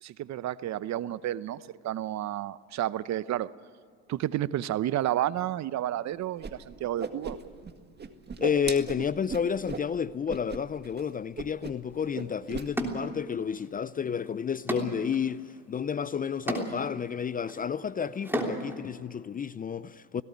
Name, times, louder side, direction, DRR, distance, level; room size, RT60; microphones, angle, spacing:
voice 1, 0.0-3.5 4.1-7.4, right 13 dB, 45° right, 0.8 m, -31 dB
Whoosh swoosh swish, 6.4-6.5 6.8-7.7 8.0-9.9 10.3-10.6 10.8-11.0 11.4-11.9 12.1-12.7, right 5 dB, 25° right, 1.9 m, -36 dB
voice 2, 8.4-20.2, left 7 dB, 20° left, 0.5 m, -31 dB
sound 1, 12.0-12.1 12.8-13.7 14.0-18.8, right 1 dB, 5° right, 3.3 m, -35 dB
18.0 x 17.5 x 9.5 m
supercardioid pair, 85°, 38 cm